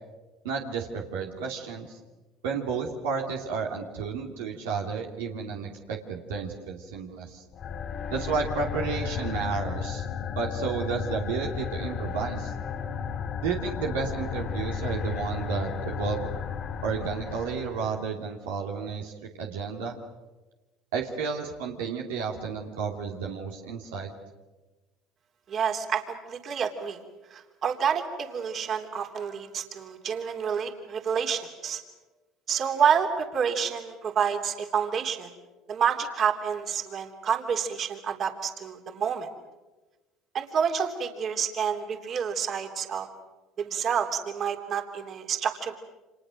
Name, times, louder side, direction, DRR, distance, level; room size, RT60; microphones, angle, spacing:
voice 1, 0.4-2.0 2.4-7.4 8.1-10.0 10.3-12.5 13.4-16.3 16.8-20.0 20.9-24.1, right 5 dB, 85° right, 0 dB, 2.7 m, -32 dB
sound 1, 7.5-18.0, left 7 dB, 55° left, 3.4 m, -34 dB
voice 2, 25.5-27.0 27.3-31.8 32.5-35.3 35.7-39.3 40.3-43.1 43.6-45.7, right 7 dB, 50° right, 4 dB, 3.3 m, -28 dB
29.5 x 26.5 x 6.5 m, 1.2 s
hypercardioid pair, 70°, 0 cm